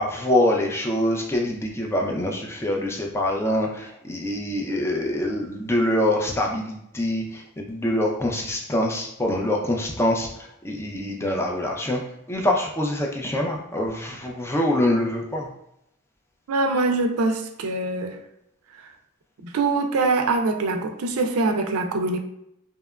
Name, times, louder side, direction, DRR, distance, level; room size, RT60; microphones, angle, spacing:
voice 1, 0.0-10.3 10.6-12.0 12.3-15.5, left 1 dB, 10° left, 1 dB, 0.3 m, -24 dB
voice 2, 16.5-18.2 19.4-22.2, right 3 dB, 80° right, 4 dB, 0.4 m, -23 dB
2.8 x 2.1 x 2.3 m, 0.79 s
head